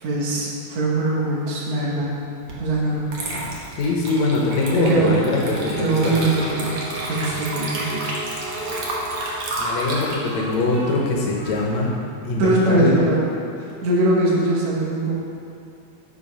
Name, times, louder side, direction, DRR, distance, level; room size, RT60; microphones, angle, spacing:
voice 1, 0.0-2.1 2.6-3.1 4.7-5.2 5.8-6.8 7.1-8.1 12.4-13.2 13.8-15.2, right 2 dB, 75° right, -4 dB, 2.6 m, -21 dB
Water / Liquid, 2.5-2.6 3.1-11.6, right 1 dB, 55° right, 1.5 m, -31 dB
voice 2, 3.8-6.2 9.6-11.9 12.2-13.0, left 3 dB, 75° left, -2 dB, 2.2 m, -22 dB
sound 1, 4.5-9.4, right 1 dB, 35° right, 2.3 m, -34 dB
Speech, 6.9-8.0 8.9-11.9, equal, 5° left, 0.9 m, -40 dB
7.0 x 5.8 x 5.3 m, 2.5 s
omnidirectional pair, 3.3 m